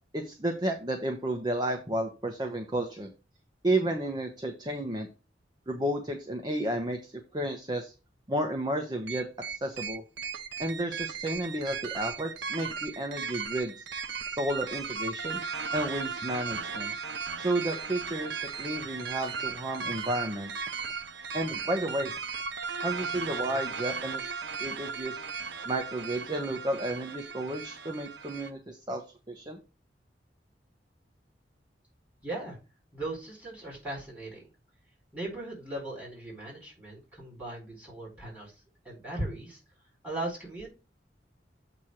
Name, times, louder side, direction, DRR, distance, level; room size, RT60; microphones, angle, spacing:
voice 1, 0.1-3.1 3.6-5.1 5.7-7.9 8.3-10.0 10.6-13.9 14.3-15.4 15.7-16.9 17.4-20.5 21.3-22.1 22.8-24.3 24.6-25.2 25.6-29.6, right 1 dB, 25° right, 4 dB, 0.9 m, -32 dB
sound 1, 9.1-28.5, right 5 dB, 80° right, 0.7 m, -36 dB
voice 2, 32.2-32.6 32.9-34.4 35.1-38.5 38.8-39.6 40.0-40.7, right 2 dB, 10° right, -5 dB, 4.3 m, -38 dB
8.0 x 3.0 x 6.2 m, 0.30 s
head